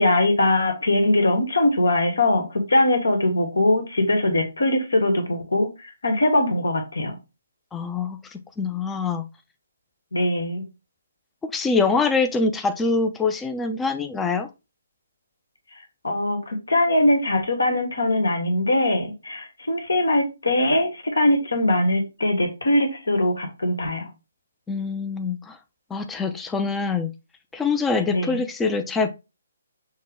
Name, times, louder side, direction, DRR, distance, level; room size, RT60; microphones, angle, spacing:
voice 1, 0.0-7.2 10.1-10.6 16.0-24.1 28.1-28.4, left 1 dB, 85° left, 1.4 m, -21 dB
voice 2, 7.7-9.2 11.5-14.5 24.7-25.6 25.9-27.1 27.5-29.1, left 4 dB, 10° left, 0.3 m, -24 dB
6.3 x 2.2 x 3.5 m
hypercardioid pair, 150°, 0 cm